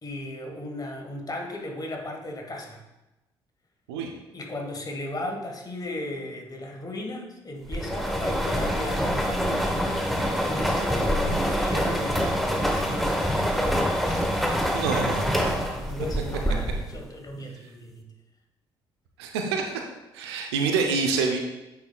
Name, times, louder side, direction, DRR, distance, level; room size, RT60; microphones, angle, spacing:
voice 1, 0.0-2.8 4.3-10.1 10.4-13.7 14.0-14.3 15.9-18.1, left 1 dB, 30° left, 2 dB, 1.5 m, -36 dB
sound 1, 7.7-17.0, equal, ahead, 1.1 m, -26 dB
voice 2, 14.7-15.7 19.2-19.8 20.1-21.4, right 4 dB, 75° right, 3 dB, 0.8 m, -27 dB
8.7 x 5.9 x 2.4 m, 1.0 s
figure-of-eight pair, 45°, 14 cm